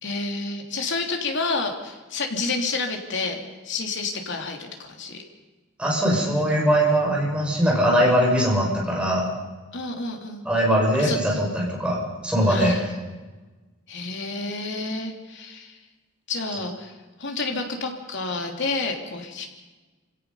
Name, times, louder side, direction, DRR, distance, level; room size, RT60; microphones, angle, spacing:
voice 1, 0.0-5.2 6.1-6.6 9.7-10.5 11.0-11.2 12.5-12.8 13.9-15.8 16.3-16.9 17.2-19.5, left 3 dB, 60° left, 3 dB, 3.0 m, -30 dB
voice 2, 5.8-9.3 10.4-12.0 12.2-12.8, equal, 5° right, -2 dB, 6.2 m, -21 dB
27.5 x 17.0 x 5.6 m, 1.2 s
head